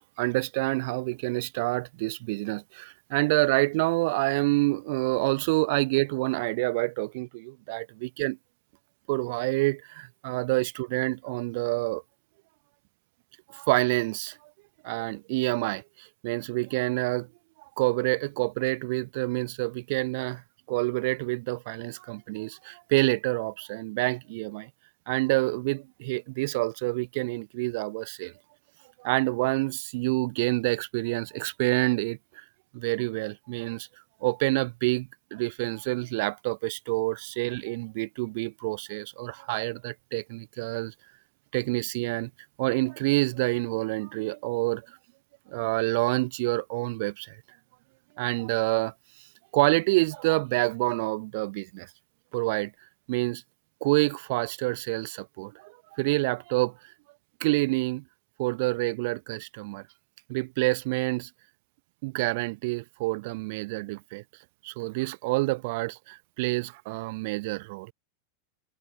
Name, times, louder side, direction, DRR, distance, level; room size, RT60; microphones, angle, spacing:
voice 1, 0.2-8.4 9.1-12.0 13.5-14.4 14.8-17.3 17.8-20.4 20.7-24.7 25.1-28.3 29.0-32.4 32.7-33.9 34.2-40.9 41.5-42.3 42.6-44.8 45.5-47.4 48.2-48.9 49.5-51.9 52.3-52.7 53.1-53.4 53.8-56.7 57.4-58.0 58.4-59.8 60.3-61.3 62.0-64.2 64.6-67.9, right 24 dB, 50° right, 0.8 m, -27 dB
figure-of-eight pair, 90°, 0 cm